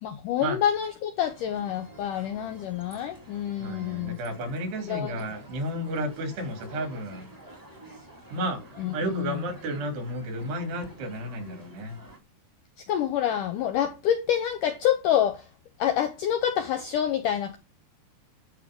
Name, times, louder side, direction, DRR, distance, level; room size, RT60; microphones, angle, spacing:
voice 1, 0.0-4.2 4.9-5.3 8.8-9.5 12.9-15.5 15.8-17.6, left 10 dB, 85° left, 1.9 m, -27 dB
sound 1, 1.2-12.2, right 1 dB, 20° right, 0.5 m, -49 dB
voice 2, 3.6-7.3 8.3-12.0, right 1 dB, 75° right, 5.1 m, -32 dB
12.0 x 6.1 x 3.7 m
omnidirectional pair, 4.8 m